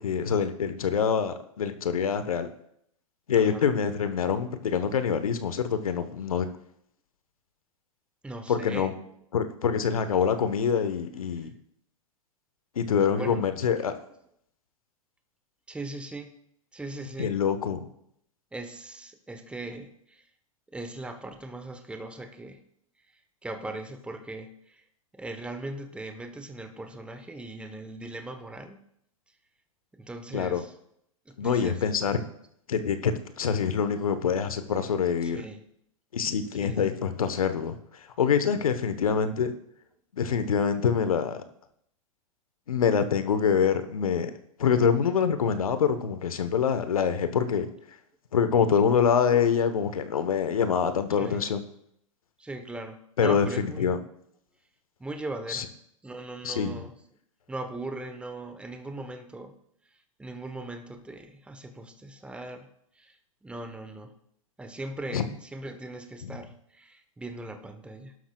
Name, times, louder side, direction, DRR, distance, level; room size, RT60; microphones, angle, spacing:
voice 1, 0.0-2.5 3.3-6.5 8.5-8.9 9.3-11.5 12.8-13.9 17.2-17.9 30.3-30.6 31.4-32.2 32.7-35.4 36.1-37.8 38.2-39.5 40.2-41.4 42.7-44.3 44.6-47.7 48.3-51.6 53.2-54.0 55.5-55.6 56.4-56.8 65.1-65.2 66.2-66.3, left 7 dB, 75° left, 10 dB, 1.2 m, -25 dB
voice 2, 3.3-3.7 8.2-9.0 13.1-13.5 15.7-16.3 16.7-17.4 18.5-20.3 20.7-22.6 23.4-24.8 25.1-28.8 29.9-30.7 31.3-32.2 35.2-35.6 36.6-36.9 51.2-51.4 52.4-53.9 55.0-55.7 56.0-57.0 57.5-59.6 60.2-62.7 62.9-64.2 64.6-68.2, right 2 dB, 5° right, 7 dB, 1.1 m, -39 dB
19.0 x 11.5 x 2.4 m, 0.72 s
hypercardioid pair, 105°, 18 cm